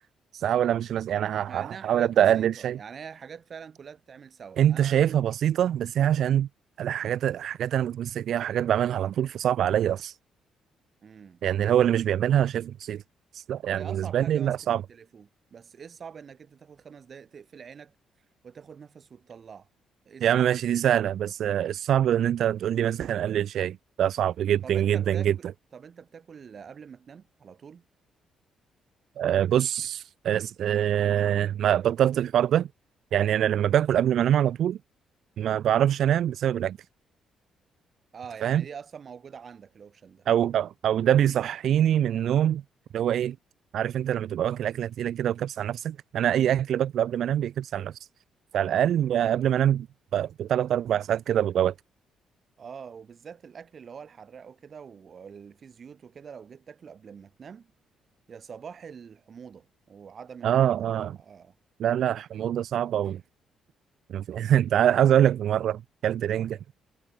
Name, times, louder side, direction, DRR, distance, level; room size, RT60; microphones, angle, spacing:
voice 1, 0.3-2.8 4.6-6.5 6.8-10.2 11.4-13.0 13.3-14.8 20.2-25.3 29.2-32.7 33.1-34.8 35.4-36.8 38.4-38.6 40.3-42.6 42.9-43.3 43.7-48.0 48.5-49.9 50.1-51.7 60.4-61.2 61.8-63.2 64.1-66.6, right 10 dB, 70° right, 1.3 m, -24 dB
voice 2, 1.5-5.0 11.0-11.4 13.7-14.6 14.9-17.9 18.4-19.7 20.0-20.3 24.6-25.3 25.7-27.8 38.1-40.3 52.6-57.7 58.3-61.5 66.3-66.5, right 6 dB, 50° right, 6.2 m, -45 dB
cardioid pair, 90°, 0 cm